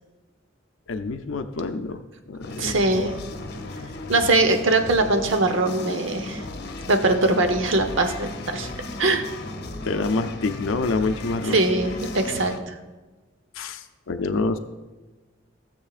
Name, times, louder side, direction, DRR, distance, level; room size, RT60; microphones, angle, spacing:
voice 1, 0.9-2.0 2.3-2.7 9.8-11.6 13.6-14.6, left 3 dB, 85° left, 9 dB, 0.5 m, -27 dB
sound 1, 2.4-12.6, left 2 dB, 55° left, 0.8 m, -35 dB
voice 2, 2.6-3.1 4.1-6.4 6.9-8.7 9.0-9.2 11.4-12.7, right 2 dB, 75° right, 7 dB, 0.9 m, -21 dB
15.5 x 7.3 x 2.5 m, 1.2 s
head